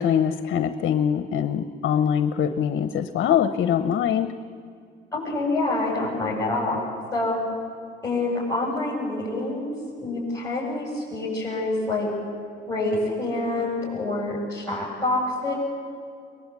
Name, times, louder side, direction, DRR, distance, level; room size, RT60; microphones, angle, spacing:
voice 1, 0.0-4.3 13.6-13.7, left 8 dB, 70° left, 9 dB, 0.9 m, -23 dB
voice 2, 5.1-6.8 7.1-7.4 8.0-9.7 10.0-12.1 12.7-15.5, left 2 dB, 15° left, -8 dB, 7.5 m, -26 dB
22.5 x 21.0 x 8.4 m, 2.3 s
cardioid pair, 90°, 20 cm